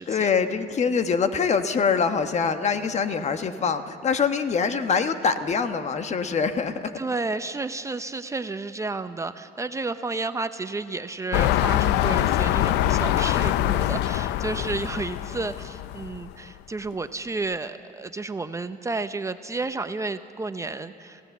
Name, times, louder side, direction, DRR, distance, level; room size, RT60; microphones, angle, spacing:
voice 1, 0.1-6.9, left 5 dB, 40° left, 9 dB, 1.2 m, -24 dB
voice 2, 7.0-21.2, right 3 dB, 20° right, 10 dB, 0.7 m, -31 dB
sound 1, 11.3-16.3 16.9-17.0, left 13 dB, 85° left, 0.6 m, -24 dB
26.5 x 16.0 x 8.2 m, 2.6 s
cardioid pair, 110°, 17 cm